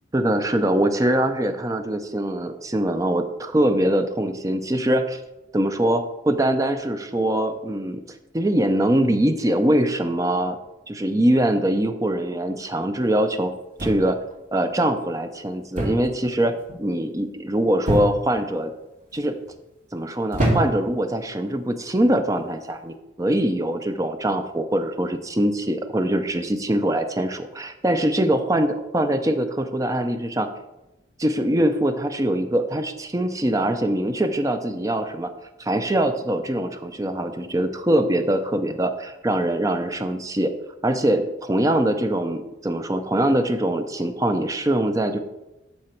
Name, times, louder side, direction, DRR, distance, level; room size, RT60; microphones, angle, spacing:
voice 1, 0.1-5.2 5.5-8.0 8.3-10.6 10.9-13.5 13.8-14.2 14.5-18.7 19.1-19.3 19.9-30.5 31.2-35.3 35.6-40.5 40.8-45.2, right 1 dB, 15° right, 7 dB, 0.5 m, -23 dB
sound 1, 13.8-14.3 15.8-16.1 16.4-16.9 17.9-18.4 19.1-19.5 20.3-21.0 21.9-22.2, right 1 dB, 40° right, 2.5 m, -25 dB
12.5 x 4.2 x 4.4 m, 0.98 s
head